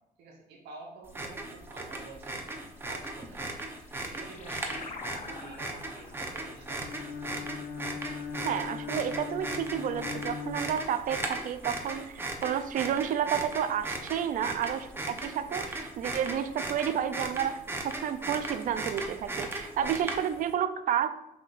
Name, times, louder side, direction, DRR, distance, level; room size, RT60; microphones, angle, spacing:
voice 1, 0.2-2.4 2.8-3.7 4.1-6.8, right 3 dB, 85° right, -1 dB, 1.2 m, -48 dB
sound 1, 1.1-20.5, right 2 dB, 15° right, 0.7 m, -37 dB
sound 2, 3.6-8.5, left 4 dB, 45° left, 0.6 m, -47 dB
Bowed string instrument, 6.7-11.3, left 5 dB, 80° left, 1.3 m, -39 dB
voice 2, 8.4-21.1, right 9 dB, 50° right, 11 dB, 0.4 m, -31 dB
5.9 x 3.6 x 2.5 m, 0.90 s
cardioid pair, 110°, 17 cm